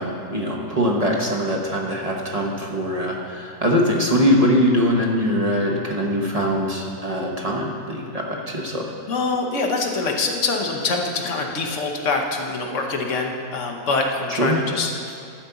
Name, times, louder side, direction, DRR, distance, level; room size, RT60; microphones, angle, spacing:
voice 1, 0.0-8.9 14.4-14.6, equal, 30° right, -1 dB, 0.9 m, -22 dB
voice 2, 9.1-15.1, left 3 dB, 55° left, 2 dB, 1.2 m, -24 dB
12.0 x 5.1 x 6.9 m, 2.4 s
omnidirectional pair, 1.7 m